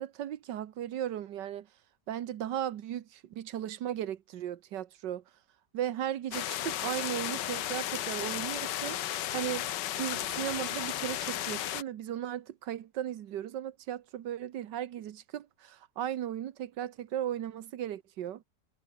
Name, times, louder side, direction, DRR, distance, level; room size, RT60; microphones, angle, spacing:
voice 1, 0.0-1.7 2.1-5.2 5.7-9.0 9.3-9.7 9.9-18.4, right 11 dB, 85° right, 1.6 m, -36 dB
sound 1, 6.3-11.8, left 12 dB, 85° left, 1.5 m, -34 dB
omnidirectional pair, 1.8 m